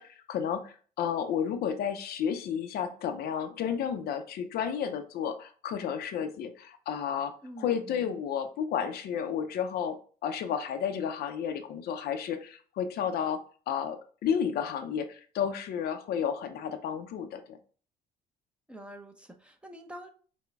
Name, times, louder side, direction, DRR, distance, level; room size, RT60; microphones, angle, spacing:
voice 1, 0.0-17.6, left 8 dB, 70° left, 7 dB, 0.6 m, -32 dB
voice 2, 7.4-8.1 18.7-20.1, right 1 dB, 5° right, 4 dB, 0.7 m, -46 dB
5.8 x 2.2 x 3.4 m, 0.41 s
cardioid pair, 110°, 17 cm